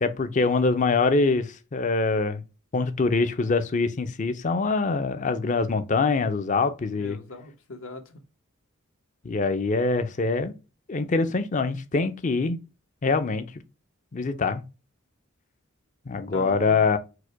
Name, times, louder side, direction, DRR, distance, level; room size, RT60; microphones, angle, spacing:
voice 1, 0.0-2.4 2.7-7.2 9.2-10.5 10.9-12.6 13.0-13.5 14.1-14.6 16.1-17.0, left 3 dB, 35° left, 0.5 m, -24 dB
voice 2, 7.0-8.2 16.1-16.8, left 3 dB, 75° left, 1.0 m, -40 dB
4.8 x 2.2 x 4.5 m
head